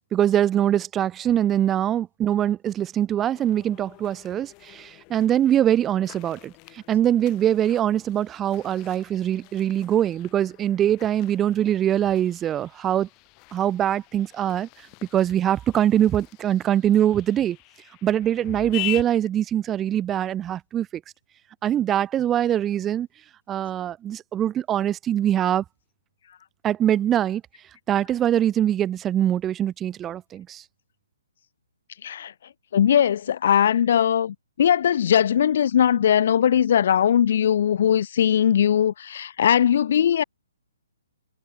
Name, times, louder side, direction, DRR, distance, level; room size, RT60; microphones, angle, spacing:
voice 1, 0.1-13.1 13.5-14.7 15.1-17.6 18.0-21.0 21.6-23.1 23.5-25.6 26.6-27.4 27.9-30.6, right 11 dB, 10° right, 0.9 m, -23 dB
sound 1, 3.3-19.0, left 30 dB, 20° left, 3.4 m, -42 dB
voice 2, 32.0-32.3 32.7-40.2, left 9 dB, 50° left, 0.9 m, -20 dB
hypercardioid pair, 165°, 0 cm